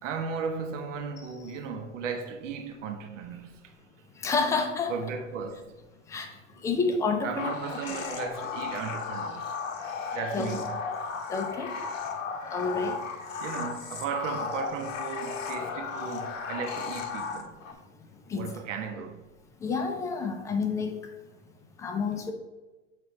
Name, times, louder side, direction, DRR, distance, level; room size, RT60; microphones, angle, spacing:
voice 1, 0.0-3.7 4.9-5.8 7.2-9.5 10.1-10.8 13.4-17.5 18.3-19.3, right 6 dB, 70° right, 0.9 m, -36 dB
voice 2, 4.2-4.9 6.1-6.3 6.6-7.5 10.3-10.5 11.0-11.7 12.5-13.0 18.3-18.6 19.6-21.0 21.8-22.3, left 4 dB, 10° left, 0.4 m, -29 dB
sound 1, 7.4-17.7, left 5 dB, 80° left, 1.0 m, -35 dB
7.4 x 4.6 x 3.1 m
hypercardioid pair, 125°, 39 cm